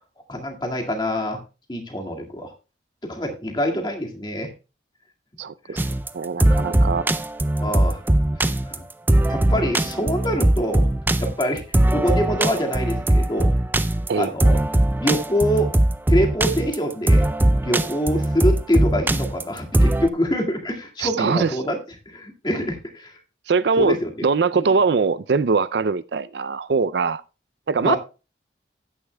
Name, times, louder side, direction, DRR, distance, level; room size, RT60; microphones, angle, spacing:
voice 1, 0.3-1.4 1.7-2.5 3.0-4.5 5.7-5.8 7.6-8.0 8.7-8.8 9.3-10.9 11.2-13.5 14.1-14.6 15.0-15.7 16.1-17.3 17.6-21.8 22.1-23.2 23.8-24.1 24.5-24.7 27.8-28.0, equal, 25° left, 2.0 m, -25 dB
voice 2, 5.4-5.8 6.1-7.1 14.1-14.3 21.0-21.5 23.5-27.2 27.7-28.0, right 4 dB, 75° right, 0.5 m, -22 dB
sound 1, 5.8-20.1, right 1 dB, 10° right, 0.4 m, -20 dB
14.0 x 9.7 x 2.2 m
head